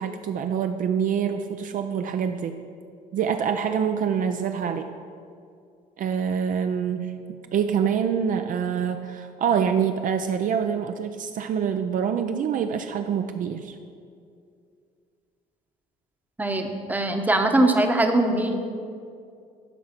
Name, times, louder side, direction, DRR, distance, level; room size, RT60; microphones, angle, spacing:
voice 1, 0.0-2.5 3.1-4.9 6.0-7.2 7.5-13.8, right 7 dB, 50° right, 7 dB, 0.5 m, -25 dB
voice 2, 16.4-18.6, right 1 dB, 10° right, 4 dB, 0.9 m, -21 dB
12.0 x 4.7 x 5.8 m, 2.3 s
cardioid pair, 110°, 17 cm